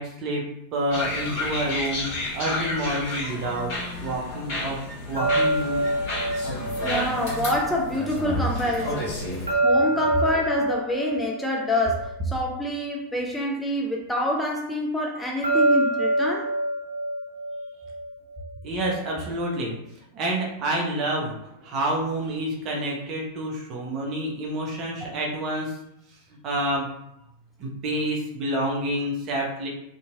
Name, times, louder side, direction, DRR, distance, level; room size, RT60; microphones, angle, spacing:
voice 1, 0.0-3.7 4.0-4.8 5.1-5.8 6.4-6.6 8.8-8.9 9.5-9.7 18.6-19.8 20.1-25.7 26.4-26.8 27.6-29.7, right 1 dB, 35° right, -2 dB, 0.7 m, -28 dB
sound 1, 0.9-9.5, left 1 dB, 45° left, 1.5 m, -31 dB
sound 2, 5.2-8.2 9.5-13.0 15.4-18.5, right 1 dB, 75° right, 0.6 m, -26 dB
voice 2, 6.8-9.2 9.6-16.5, left 1 dB, 5° left, -1 dB, 0.4 m, -27 dB
2.8 x 2.6 x 2.3 m, 0.77 s
figure-of-eight pair, 90°, 0 cm